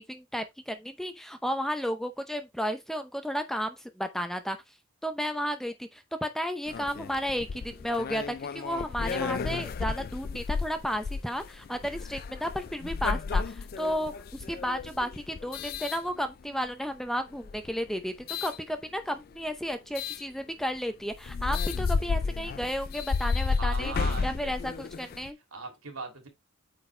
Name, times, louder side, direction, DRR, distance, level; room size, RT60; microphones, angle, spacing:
voice 1, 0.0-4.6 5.0-18.1 18.4-23.9 24.2-25.4, equal, ahead, 0.6 m, -33 dB
sound 1, 6.7-16.7 17.3-18.6 19.9-20.2 20.8-20.9 21.1-25.3, left 5 dB, 45° left, 0.4 m, -32 dB
voice 2, 23.6-24.5 25.5-26.3, right 3 dB, 85° right, 2.7 m, -38 dB
8.7 x 4.3 x 3.3 m
head